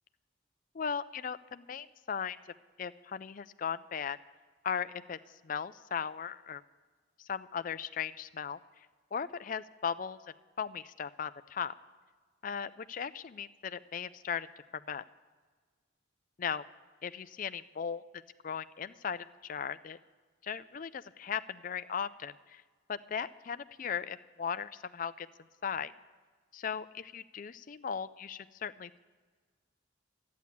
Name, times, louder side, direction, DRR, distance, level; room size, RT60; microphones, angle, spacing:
voice 1, 0.7-2.4 2.8-4.2 4.6-5.2 5.4-6.6 7.2-8.6 9.1-10.2 10.6-11.7 12.4-14.5 14.7-15.0 16.4-16.6 17.0-20.0 20.4-22.6 22.9-25.3 25.6-25.9 26.5-29.0, left 7 dB, 40° left, 14 dB, 0.4 m, -37 dB
12.0 x 9.5 x 8.4 m, 1.5 s
head